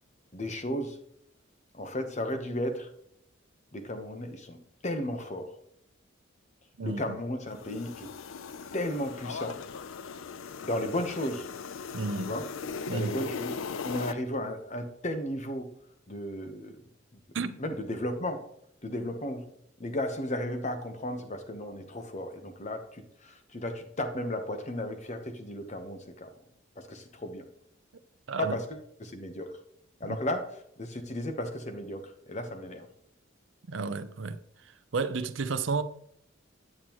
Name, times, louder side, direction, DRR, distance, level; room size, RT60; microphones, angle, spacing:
voice 1, 0.3-1.0 1.7-2.9 3.7-5.5 6.8-8.1 8.7-9.6 10.6-11.5 12.2-12.5 12.9-15.7 16.1-16.8 17.1-17.2 17.6-18.4 18.8-19.4 19.8-26.3 26.8-27.4 28.4-29.6 30.0-32.9, left 1 dB, 35° left, 1.0 m, -34 dB
sound 1, 7.5-14.1, left 5 dB, 80° left, 0.4 m, -39 dB
voice 2, 11.9-12.3 12.9-13.2 17.3-17.5 28.3-28.5 30.0-30.2 33.7-34.4 34.9-35.8, right 4 dB, 65° right, 0.6 m, -31 dB
8.8 x 7.6 x 3.0 m
head